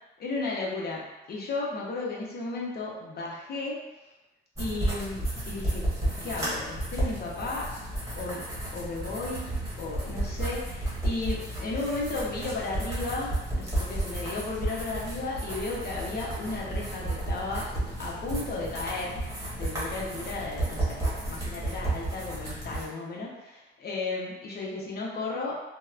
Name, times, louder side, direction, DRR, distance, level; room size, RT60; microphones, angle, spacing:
voice 1, 0.2-3.8 4.6-5.8 6.2-7.7 8.1-8.4 8.7-9.5 9.8-17.7 18.0-19.2 19.5-25.6, left 3 dB, 55° left, -4 dB, 0.7 m, -34 dB
sound 1, 4.6-22.8, right 1 dB, 15° right, 1.0 m, -32 dB
2.8 x 2.1 x 2.3 m, 1.0 s
cardioid pair, 90°, 20 cm